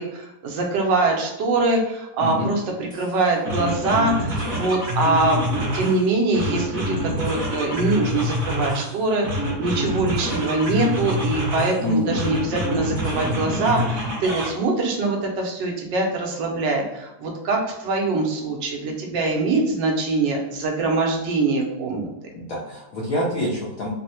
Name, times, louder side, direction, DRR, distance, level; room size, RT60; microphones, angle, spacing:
voice 1, 0.0-22.1, right 3 dB, 75° right, 1 dB, 1.3 m, -23 dB
voice 2, 2.2-2.5 11.8-12.2 22.3-23.9, left 1 dB, 70° left, -5 dB, 0.8 m, -26 dB
sound 1, 2.9-3.1 3.4-6.0 6.3-8.9 9.2-11.8 12.1-14.5, equal, 40° right, 1.3 m, -26 dB
3.6 x 2.0 x 2.8 m, 0.92 s
omnidirectional pair, 2.0 m